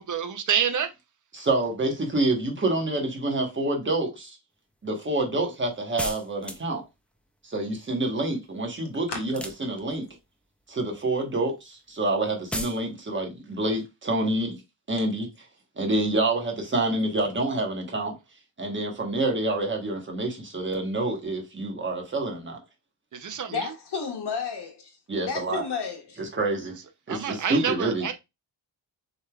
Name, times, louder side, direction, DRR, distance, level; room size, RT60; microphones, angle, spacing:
voice 1, 0.1-0.9 23.1-23.5 27.1-28.1, right 8 dB, 45° right, 0.7 m, -27 dB
voice 2, 1.3-4.4 4.8-6.8 7.4-10.1 10.7-14.6 14.9-15.3 15.8-18.1 18.6-22.6 25.1-25.6 26.2-26.7 27.1-28.1, right 2 dB, 25° right, 1.2 m, -27 dB
sound 1, 6.0-6.9 9.3-10.1 12.5-12.8, equal, 5° left, 0.4 m, -34 dB
voice 3, 23.5-25.0 25.2-26.2, left 5 dB, 60° left, 1.5 m, -32 dB
6.3 x 3.4 x 2.3 m
wide cardioid pair, 165°, 44 cm